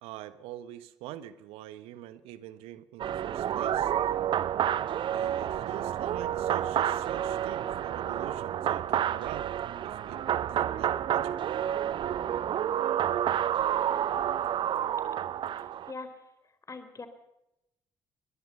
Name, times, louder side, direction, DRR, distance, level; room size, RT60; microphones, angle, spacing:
voice 1, 0.0-3.9 5.1-10.2 10.5-11.4, right 12 dB, 65° right, 15 dB, 1.3 m, -44 dB
sound 1, 3.0-15.9, right 10 dB, 50° right, 0.8 m, -29 dB
voice 2, 15.5-16.1 16.7-17.1, left 3 dB, 30° left, 10 dB, 4.4 m, -42 dB
23.0 x 21.5 x 5.7 m, 0.87 s
figure-of-eight pair, 45°, 10 cm